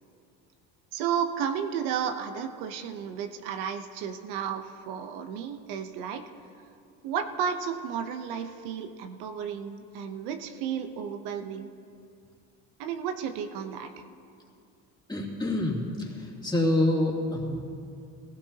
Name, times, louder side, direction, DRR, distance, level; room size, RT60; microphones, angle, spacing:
voice 1, 0.9-6.3 7.0-11.7 12.8-14.0, right 8 dB, 85° right, 7 dB, 0.9 m, -33 dB
voice 2, 15.1-17.6, left 1 dB, 15° left, -3 dB, 2.7 m, -27 dB
18.0 x 15.5 x 2.9 m, 2.5 s
supercardioid pair, 100°, 32 cm